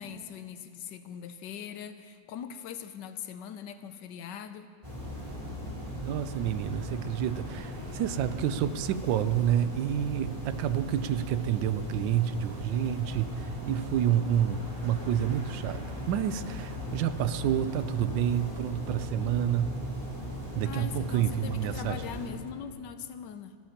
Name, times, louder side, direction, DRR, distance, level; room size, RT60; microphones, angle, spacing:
voice 1, 0.0-4.7 20.6-23.6, left 8 dB, 75° left, 10 dB, 1.2 m, -41 dB
sound 1, 4.8-22.3, equal, 20° right, 3.0 m, -38 dB
voice 2, 6.0-19.8 20.5-22.0, right 10 dB, 80° right, 13 dB, 1.2 m, -29 dB
29.0 x 13.0 x 2.9 m, 2.2 s
omnidirectional pair, 2.1 m